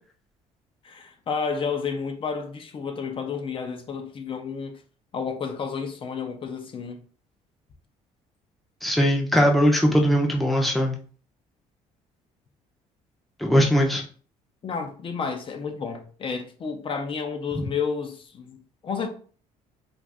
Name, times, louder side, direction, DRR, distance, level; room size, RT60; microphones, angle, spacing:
voice 1, 0.8-4.8 5.1-7.0 14.6-19.1, left 5 dB, 35° left, 0.6 m, -31 dB
voice 2, 8.8-10.9 13.4-14.0, equal, ahead, 0.7 m, -20 dB
2.5 x 2.5 x 3.4 m
cardioid pair, 105°, 14 cm